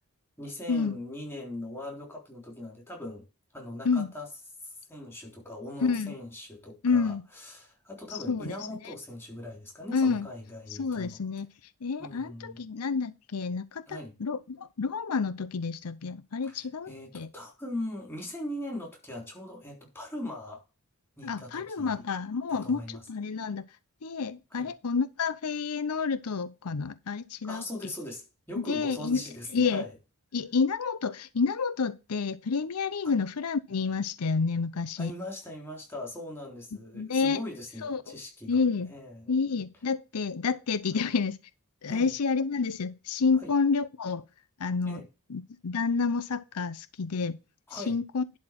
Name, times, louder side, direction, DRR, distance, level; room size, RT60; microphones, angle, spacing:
voice 1, 0.4-3.3 3.5-4.3 4.9-11.2 12.0-12.6 13.9-14.1 16.4-20.6 21.2-22.0 22.5-23.0 24.5-24.7 27.4-29.9 33.0-33.1 35.0-38.6 38.9-39.3 41.0-41.1 41.9-42.1 43.3-43.5 44.8-45.1 47.7-48.0, left 1 dB, 10° left, 3.6 m, -40 dB
voice 2, 5.8-6.1 6.8-7.2 8.1-8.5 9.9-10.3 10.8-11.5 11.8-17.3 21.2-23.6 24.0-27.6 28.7-29.2 29.5-29.9 30.3-35.1 36.9-37.4 37.8-38.0 38.5-38.9 39.3-41.4 41.8-44.2 44.6-45.0 45.3-47.4 47.7-48.2, left 5 dB, 85° left, 0.7 m, -29 dB
11.5 x 4.3 x 5.9 m
head